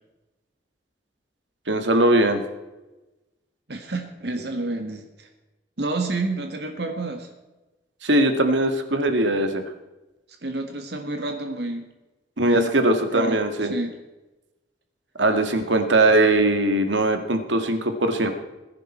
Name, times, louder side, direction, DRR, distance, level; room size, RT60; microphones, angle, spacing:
voice 1, 1.7-2.4 8.0-9.6 12.4-13.7 15.2-18.3, right 1 dB, 85° right, 7 dB, 1.9 m, -20 dB
voice 2, 3.7-5.3 5.8-7.3 10.4-11.8 12.4-12.7 13.1-13.9, right 2 dB, 65° right, 5 dB, 1.7 m, -29 dB
21.5 x 10.5 x 4.4 m, 1.1 s
head